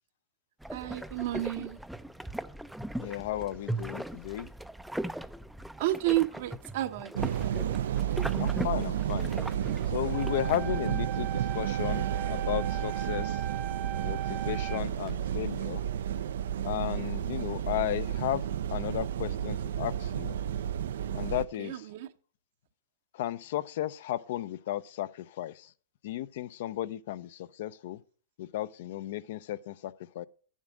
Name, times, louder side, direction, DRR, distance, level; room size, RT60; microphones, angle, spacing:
sound 1, 0.6-10.6, right 1 dB, ahead, 0.4 m, -39 dB
voice 1, 0.7-1.8 5.8-7.3 10.7-10.8 16.9-17.2 21.6-22.1, right 15 dB, 60° right, 0.8 m, -31 dB
voice 2, 3.0-4.5 8.4-9.3 9.9-13.4 14.0-15.8 16.6-18.4 18.7-20.4 21.1-21.7 23.2-25.5 26.0-28.0 28.4-30.3, left 13 dB, 65° left, 0.5 m, -34 dB
sound 2, 7.2-21.5, right 10 dB, 75° right, 0.3 m, -31 dB
sound 3, 10.1-15.1, right 11 dB, 30° right, 0.9 m, -39 dB
9.6 x 7.3 x 4.9 m
hypercardioid pair, 130°, 0 cm